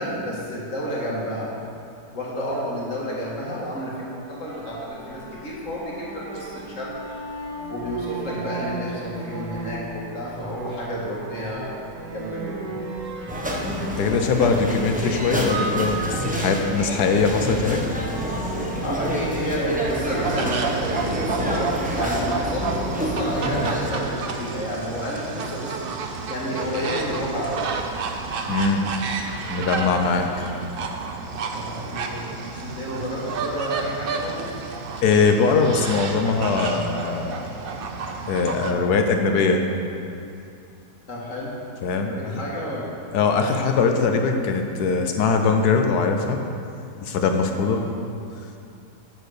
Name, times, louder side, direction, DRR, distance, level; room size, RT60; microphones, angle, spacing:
voice 1, 0.0-1.5 2.1-7.2 7.7-11.8 12.1-12.8 13.2-13.3 18.8-27.7 31.5-32.3 32.6-34.4 38.6-38.9 41.1-41.6 42.1-42.9 47.5-47.9, equal, 45° left, -5 dB, 2.1 m, -30 dB
sound 1, 4.5-21.7, right 2 dB, 65° right, 1.4 m, -36 dB
sound 2, 13.3-23.9, equal, 10° right, 0.4 m, -28 dB
voice 2, 13.6-17.8 28.5-28.9 29.3-30.4 35.0-37.4 38.3-39.6 41.8-42.4 43.1-46.4 47.0-47.8, left 4 dB, 70° left, 4 dB, 1.3 m, -21 dB
sound 3, 19.9-38.7, right 4 dB, 90° right, 0.5 m, -31 dB
7.9 x 7.0 x 6.5 m, 2.5 s
omnidirectional pair, 1.9 m